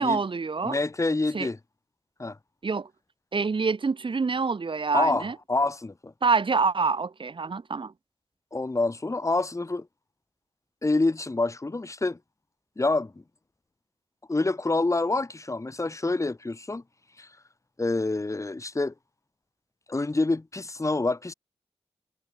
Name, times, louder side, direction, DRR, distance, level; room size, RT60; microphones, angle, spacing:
voice 1, 0.0-0.8 1.3-1.5 2.6-2.9 3.3-5.3 6.2-7.9, right 4 dB, 60° right, 3.2 m, -26 dB
voice 2, 0.6-1.6 2.2-2.4 4.9-6.1 8.5-9.9 10.8-12.2 12.8-13.1 14.3-16.8 17.2-17.4 17.8-18.9 19.9-21.3, left 2 dB, 30° left, 2.5 m, -27 dB
cardioid pair, 65°, 10 cm